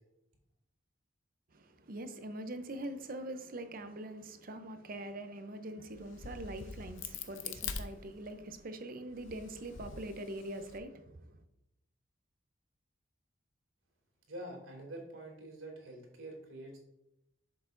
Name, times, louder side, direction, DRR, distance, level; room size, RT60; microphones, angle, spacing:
voice 1, 1.5-11.4, right 1 dB, 45° right, 0.6 m, -43 dB
Crack, 5.9-8.6 9.1-10.8, left 6 dB, 65° left, 0.7 m, -44 dB
voice 2, 14.3-16.8, right 1 dB, 90° right, 2.7 m, -46 dB
8.0 x 6.8 x 2.6 m
head